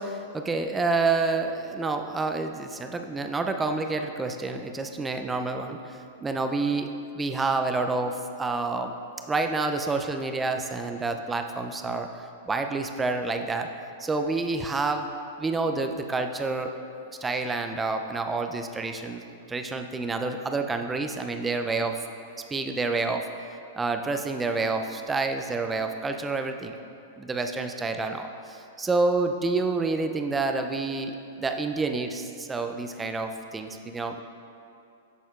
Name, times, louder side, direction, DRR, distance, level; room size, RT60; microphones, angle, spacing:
voice 1, 0.0-8.9 9.3-13.7 14.0-15.1 15.4-16.8 17.2-19.2 19.5-22.0 22.5-26.7 27.2-34.2, right 3 dB, 15° right, 5 dB, 0.4 m, -28 dB
12.0 x 4.2 x 2.4 m, 2.7 s
hypercardioid pair, 105°, 0 cm